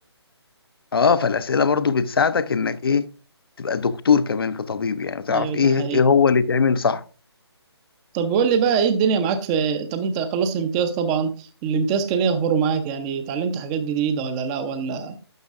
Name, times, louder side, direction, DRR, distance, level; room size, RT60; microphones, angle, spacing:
voice 1, 0.9-3.0 3.6-7.0, left 5 dB, 55° left, 0.7 m, -20 dB
voice 2, 5.3-6.0 8.1-15.2, right 6 dB, 15° right, 0.7 m, -23 dB
12.0 x 7.0 x 2.5 m
figure-of-eight pair, 150°, 14 cm